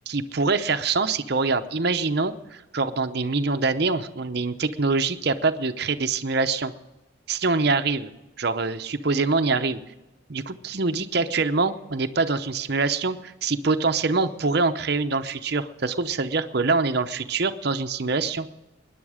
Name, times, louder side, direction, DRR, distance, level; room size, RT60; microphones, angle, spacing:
voice 1, 0.1-6.7 7.3-8.1 8.4-9.8 10.3-18.5, right 3 dB, 50° right, 8 dB, 0.8 m, -24 dB
21.0 x 10.5 x 5.0 m, 1.0 s
head